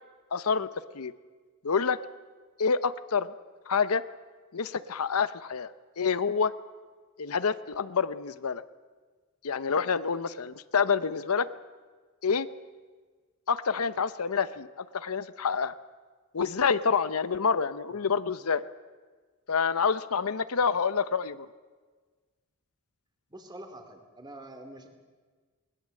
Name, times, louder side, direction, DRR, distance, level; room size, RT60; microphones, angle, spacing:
voice 1, 0.3-0.7 0.9-1.1 1.6-2.0 2.6-3.3 3.7-4.0 4.5-5.7 6.0-6.5 7.2-8.6 9.4-11.5 12.2-12.5 13.5-15.7 16.3-18.6 19.5-21.5, left 5 dB, 75° left, 14 dB, 0.7 m, -27 dB
voice 2, 23.3-24.9, right 1 dB, 20° right, 5 dB, 2.4 m, -46 dB
20.0 x 20.0 x 7.6 m, 1.4 s
head